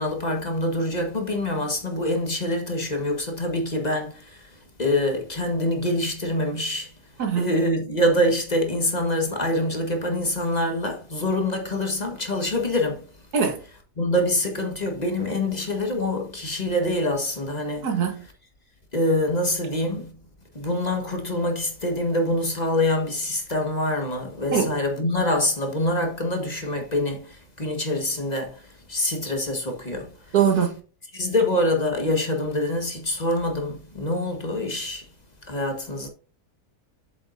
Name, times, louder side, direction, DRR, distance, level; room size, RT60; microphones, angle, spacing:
voice 1, 0.0-6.9 7.4-13.0 14.0-17.9 18.9-20.2 20.5-30.1 31.1-35.1 35.5-36.1, left 1 dB, 25° left, 1.5 m, -25 dB
voice 2, 17.8-18.3 24.5-24.7 30.3-30.8, right 7 dB, 65° right, 1.9 m, -22 dB
7.9 x 7.3 x 2.6 m
omnidirectional pair, 1.8 m